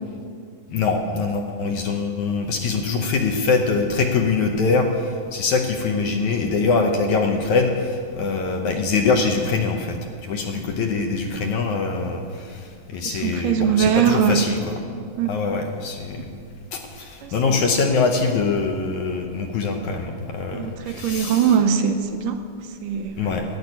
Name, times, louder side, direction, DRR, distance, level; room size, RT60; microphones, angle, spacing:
voice 1, 0.7-10.0 10.2-12.7 12.9-14.8 15.3-16.3 16.7-21.6 23.2-23.4, left 4 dB, 70° left, 3 dB, 2.0 m, -23 dB
voice 2, 13.1-14.4 15.2-15.3 17.2-17.6 20.5-22.4 22.8-23.3, right 8 dB, 80° right, 7 dB, 2.1 m, -21 dB
10.5 x 8.5 x 10.0 m, 2.2 s
omnidirectional pair, 4.1 m